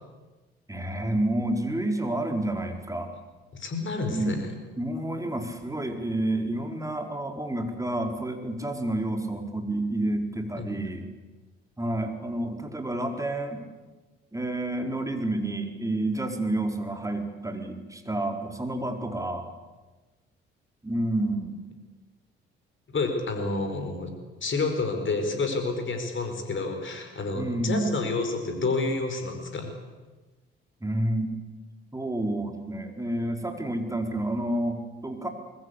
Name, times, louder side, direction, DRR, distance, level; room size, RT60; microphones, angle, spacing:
voice 1, 0.7-3.1 4.1-4.4 4.8-11.1 11.8-13.7 14.3-19.5 20.8-21.6 27.3-27.9 30.8-31.3 31.9-35.3, right 1 dB, 10° right, 4 dB, 4.7 m, -29 dB
voice 2, 3.5-4.4 22.9-24.1 24.4-29.7, left 3 dB, 40° left, 5 dB, 5.2 m, -29 dB
26.0 x 21.0 x 8.4 m, 1.2 s
figure-of-eight pair, 45°, 30 cm